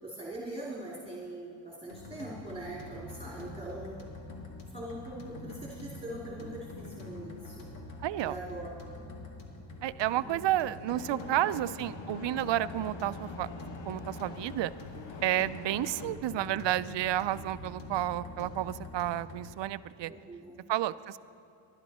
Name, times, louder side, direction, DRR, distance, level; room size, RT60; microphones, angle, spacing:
voice 1, 0.0-4.0 4.7-7.6 8.2-9.1 10.2-10.5 11.1-11.5 20.0-20.6, right 1 dB, 10° right, -5 dB, 2.8 m, -42 dB
sound 1, 1.9-19.6, left 2 dB, 90° left, 2.1 m, -45 dB
voice 2, 8.0-8.3 9.8-13.5 13.9-14.7 15.2-20.1 20.7-21.2, right 13 dB, 65° right, 16 dB, 0.5 m, -31 dB
sound 2, 10.9-16.1, left 4 dB, 65° left, 1.3 m, -45 dB
19.5 x 11.5 x 4.2 m, 2.7 s
cardioid pair, 80°, 48 cm